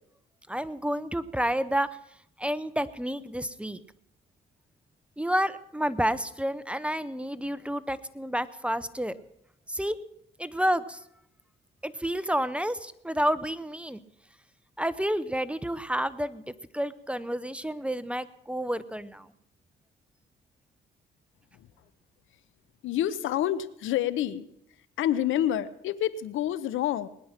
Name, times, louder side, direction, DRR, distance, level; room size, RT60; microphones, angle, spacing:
voice 1, 0.5-1.9 2.4-3.8 5.2-9.2 9.7-10.0 10.4-11.0 11.8-14.0 14.8-19.3, equal, 5° right, 14 dB, 0.7 m, -30 dB
voice 2, 22.8-24.5 25.0-27.1, left 11 dB, 80° left, 16 dB, 0.8 m, -28 dB
20.0 x 10.5 x 5.8 m, 0.76 s
cardioid pair, 90°, 20 cm